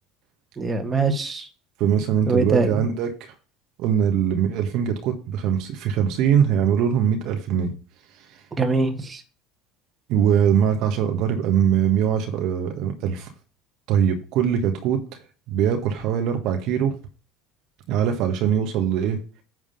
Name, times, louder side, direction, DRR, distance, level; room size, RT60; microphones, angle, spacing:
voice 1, 0.6-1.5 2.3-2.8 8.6-9.2, right 4 dB, 25° right, 6 dB, 1.8 m, -22 dB
voice 2, 1.8-3.3 3.8-7.7 10.1-13.3 13.9-15.0 15.5-16.9 17.9-19.2, right 8 dB, 60° right, 5 dB, 1.5 m, -22 dB
9.5 x 3.5 x 6.8 m, 0.36 s
hypercardioid pair, 70°, 0 cm